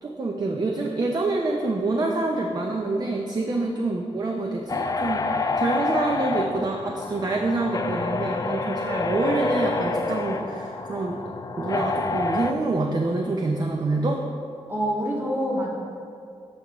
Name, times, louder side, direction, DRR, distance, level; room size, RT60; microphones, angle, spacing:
voice 1, 0.0-11.2 11.6-14.2, right 2 dB, 35° right, 1 dB, 0.5 m, -26 dB
sound 1, 4.7-12.5, left 3 dB, 30° left, 0.4 m, -27 dB
voice 2, 14.7-15.7, equal, 20° right, -4 dB, 1.6 m, -26 dB
14.0 x 4.7 x 3.0 m, 2.4 s
wide cardioid pair, 125°, 11 cm